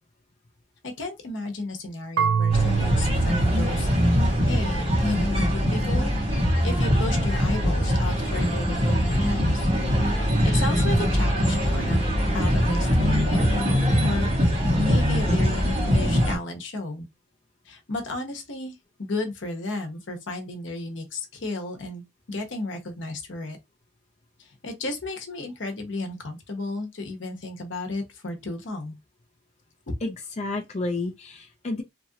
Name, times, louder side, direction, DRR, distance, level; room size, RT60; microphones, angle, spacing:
voice 1, 0.8-3.9 4.5-6.2 6.6-9.7 10.4-12.0 12.3-14.3 14.7-17.1 17.7-18.7 19.0-23.6 24.6-29.0, left 2 dB, 75° left, 0.9 m, -33 dB
Marimba xylophone / Wood, 2.2-5.0, right 6 dB, 80° right, 0.3 m, -27 dB
sound 1, 2.5-16.4, equal, 30° right, 1.5 m, -22 dB
voice 2, 30.0-31.8, left 2 dB, 35° left, 0.5 m, -31 dB
3.0 x 2.4 x 2.7 m
head